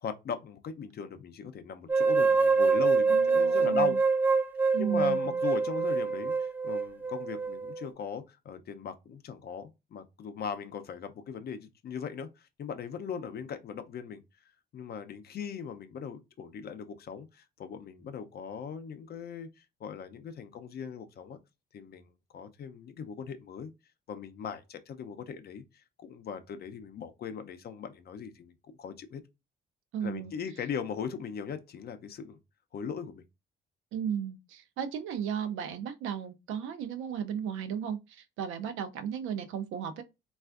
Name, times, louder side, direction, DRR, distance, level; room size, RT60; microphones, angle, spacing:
voice 1, 0.0-4.0 4.8-14.2 14.7-21.4 21.7-23.7 24.1-29.2 30.0-32.4 32.7-33.2, left 7 dB, 55° left, 0.5 m, -39 dB
sound 1, 1.9-7.9, right 4 dB, 10° right, 0.3 m, -26 dB
voice 2, 3.1-4.0 4.7-5.4 29.9-30.3 33.9-40.0, right 8 dB, 85° right, 0.5 m, -35 dB
3.3 x 2.4 x 2.4 m
cardioid pair, 90°, 20 cm